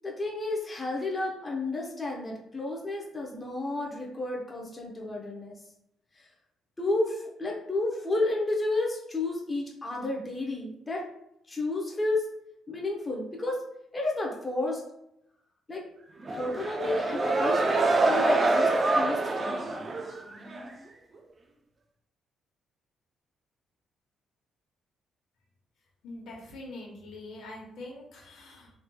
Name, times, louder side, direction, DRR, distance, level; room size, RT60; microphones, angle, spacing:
voice 1, 0.0-5.5 6.2-6.3 6.8-11.0 11.5-12.2 12.7-13.6 13.9-14.8 15.7-15.8 16.4-19.7, left 2 dB, 20° left, -2 dB, 0.7 m, -31 dB
sound 1, 16.2-20.7, right 2 dB, 40° right, 0.5 m, -26 dB
voice 2, 26.0-28.7, left 2 dB, 75° left, -1 dB, 1.0 m, -44 dB
3.2 x 3.0 x 2.2 m, 0.80 s
cardioid pair, 90°, 0 cm